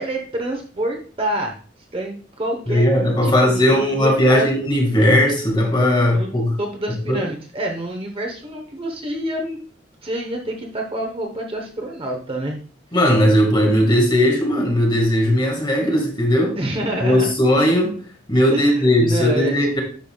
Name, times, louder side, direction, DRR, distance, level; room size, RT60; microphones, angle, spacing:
voice 1, 0.0-1.5 1.9-2.9 3.2-4.5 6.1-6.3 6.6-9.6 10.0-12.6 16.6-17.3 18.5-19.8, right 1 dB, 30° right, 2 dB, 0.9 m, -27 dB
voice 2, 2.7-6.5 7.1-7.2 12.9-16.6 17.0-18.0 18.3-19.8, left 1 dB, 25° left, 1 dB, 1.7 m, -17 dB
10.5 x 5.5 x 2.3 m, 0.42 s
head